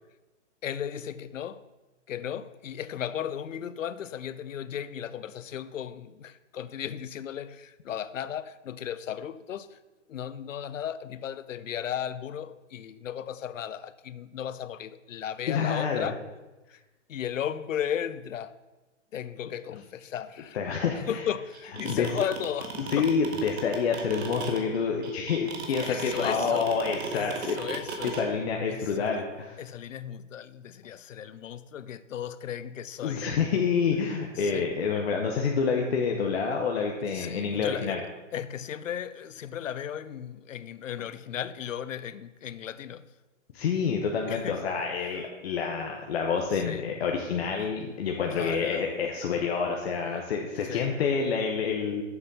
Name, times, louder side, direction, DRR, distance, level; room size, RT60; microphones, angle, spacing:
voice 1, 0.6-1.6 2.1-9.8 10.1-16.2 16.7-16.8 17.1-18.6 19.1-20.6 21.1-23.1 25.8-26.7 27.1-28.1 28.7-29.1 29.6-33.2 34.4-34.7 37.1-38.0 38.3-43.1 44.3-44.6 45.0-45.1 46.5-46.8 47.6-47.7 48.3-48.9 50.6-50.9, left 9 dB, 80° left, 0.6 m, -35 dB
voice 2, 15.5-16.1 20.5-21.1 21.9-22.1 22.9-27.6 28.0-29.6 33.0-38.0 43.5-52.0, left 5 dB, 55° left, 1.1 m, -28 dB
sound 1, 21.5-28.2, right 5 dB, 55° right, 1.6 m, -36 dB
7.2 x 6.7 x 5.4 m
hypercardioid pair, 150°, 38 cm